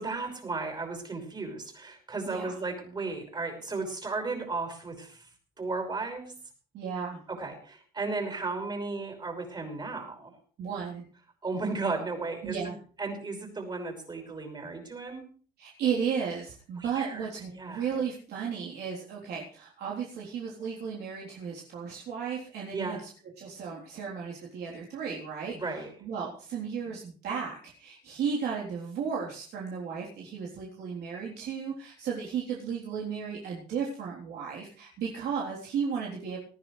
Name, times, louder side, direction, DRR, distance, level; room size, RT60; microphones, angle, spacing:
voice 1, 0.0-5.3 5.6-6.3 7.3-10.3 11.4-15.3 16.8-17.3 17.5-17.9 22.7-23.0 25.5-25.9, right 3 dB, 25° right, 4 dB, 5.7 m, -35 dB
voice 2, 6.7-7.2 10.6-11.0 12.4-12.8 15.6-23.0 23.4-25.6 26.0-36.4, right 6 dB, 70° right, -4 dB, 3.8 m, -34 dB
19.0 x 14.5 x 3.3 m, 0.42 s
cardioid pair, 110°, 17 cm